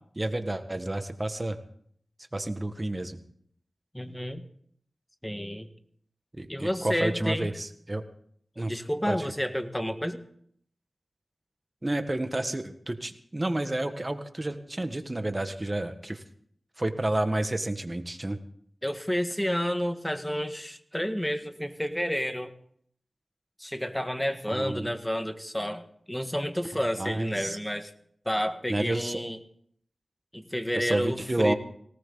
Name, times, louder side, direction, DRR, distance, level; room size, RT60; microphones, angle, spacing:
voice 1, 0.2-1.6 2.3-3.2 6.3-8.0 8.6-8.7 9.1-9.2 11.8-16.2 16.8-18.4 24.5-24.9 27.0-27.6 28.7-29.2 30.8-31.5, right 1 dB, 30° right, 8 dB, 1.8 m, -30 dB
voice 2, 3.9-4.5 5.2-5.7 6.5-7.5 8.6-10.2 18.8-22.5 23.6-27.9 28.2-29.4 30.3-31.5, equal, 5° left, 8 dB, 1.7 m, -30 dB
18.5 x 18.0 x 4.0 m, 0.65 s
cardioid pair, 45°, 0 cm